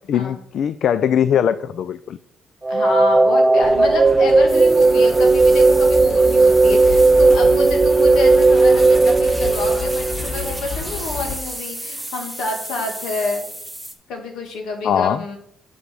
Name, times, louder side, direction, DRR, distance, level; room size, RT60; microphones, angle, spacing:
voice 1, 0.1-2.2 14.8-15.2, left 9 dB, 65° left, 14 dB, 0.4 m, -20 dB
sound 1, 2.6-10.6, right 3 dB, 25° right, 0.3 m, -15 dB
voice 2, 2.7-13.4 14.1-15.4, left 3 dB, 85° left, 3 dB, 2.3 m, -28 dB
sound 2, 3.6-11.4, left 4 dB, 40° left, 1.1 m, -31 dB
sound 3, 4.5-13.9, right 1 dB, ahead, 2.0 m, -33 dB
8.3 x 5.5 x 6.2 m, 0.72 s
cardioid pair, 90°, 0 cm